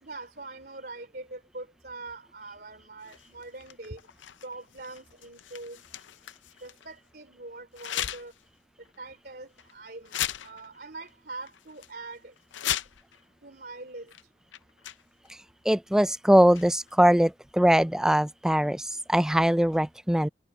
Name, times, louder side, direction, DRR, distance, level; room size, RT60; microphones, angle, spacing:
voice 1, 0.0-4.0 4.4-5.8 6.6-8.3 9.0-10.2 10.4-12.3 12.6-12.7 13.4-14.1, right 2 dB, 55° right, 3.2 m, -43 dB
sound 1, 3.0-6.9 7.7-8.4 8.8-9.0 9.6-9.7 10.0-11.1 11.5-11.9 12.4-13.2 14.1-14.2 14.5-15.3 16.3-16.9, left 12 dB, 90° left, 0.6 m, -37 dB
voice 2, 15.7-20.3, equal, 5° right, 0.3 m, -22 dB
head